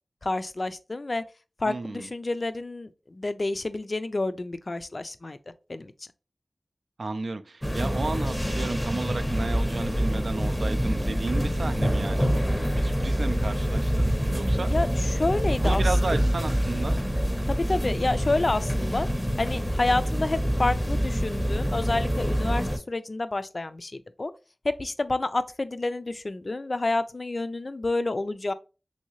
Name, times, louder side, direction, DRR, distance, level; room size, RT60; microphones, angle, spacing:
voice 1, 0.2-1.2 1.6-5.4 5.7-5.9 14.7-16.2 17.5-19.1 19.4-24.3 24.6-28.5, left 2 dB, 55° left, 0.3 m, -29 dB
voice 2, 1.6-2.1 7.0-14.7 15.5-17.0, right 3 dB, 85° right, 0.3 m, -33 dB
sound 1, 7.6-22.8, equal, 5° left, 0.6 m, -26 dB
3.1 x 2.7 x 2.9 m
wide cardioid pair, 55°, 0 cm